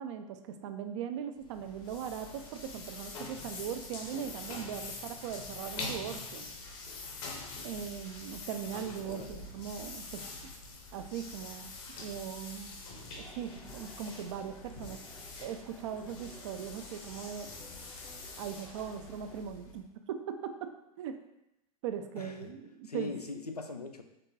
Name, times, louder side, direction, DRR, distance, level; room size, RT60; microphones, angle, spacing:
voice 1, 0.0-6.5 7.6-10.3 10.9-11.7 12.0-12.8 13.4-15.0 15.4-17.5 18.4-21.2 21.8-23.1, right 8 dB, 50° right, 8 dB, 0.5 m, -39 dB
sound 1, 1.4-19.9, left 3 dB, 45° left, 1.0 m, -45 dB
voice 2, 9.0-9.5 22.2-22.5 22.8-24.0, left 3 dB, 90° left, 6 dB, 0.5 m, -41 dB
sound 2, 13.2-19.4, left 1 dB, 10° left, 0.6 m, -55 dB
5.3 x 3.5 x 2.7 m, 0.87 s
figure-of-eight pair, 85°, 19 cm